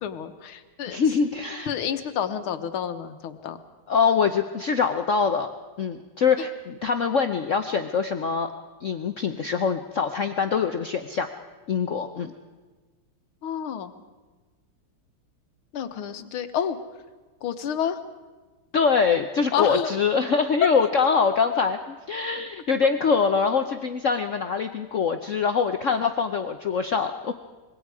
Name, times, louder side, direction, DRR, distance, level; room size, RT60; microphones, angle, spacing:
voice 1, 0.0-1.0 1.7-3.6 13.4-14.0 15.7-16.8 17.4-18.0 19.5-20.0, left 8 dB, 90° left, 9 dB, 1.9 m, -29 dB
voice 2, 0.9-1.7 3.9-5.5 5.8-8.5 8.8-11.3 11.7-12.3 18.7-27.3, left 5 dB, 65° left, 7 dB, 0.7 m, -24 dB
25.5 x 22.0 x 4.8 m, 1.3 s
omnidirectional pair, 2.3 m